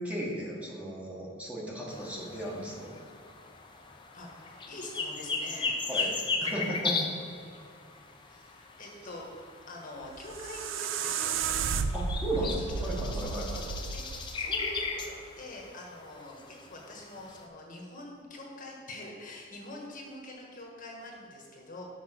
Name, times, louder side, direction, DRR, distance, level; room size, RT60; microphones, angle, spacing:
voice 1, 0.0-2.9 5.9-6.1 6.4-7.1 11.9-13.6, right 1 dB, 5° right, -4 dB, 1.4 m, -35 dB
sound 1, 1.9-17.4, left 4 dB, 25° left, 0.7 m, -37 dB
voice 2, 4.1-6.1 6.4-6.5 8.3-11.4 12.4-21.8, left 1 dB, 45° left, -1 dB, 1.3 m, -45 dB
sound 2, 10.0-15.1, right 5 dB, 70° right, 0.4 m, -33 dB
6.0 x 5.9 x 6.1 m, 2.2 s
head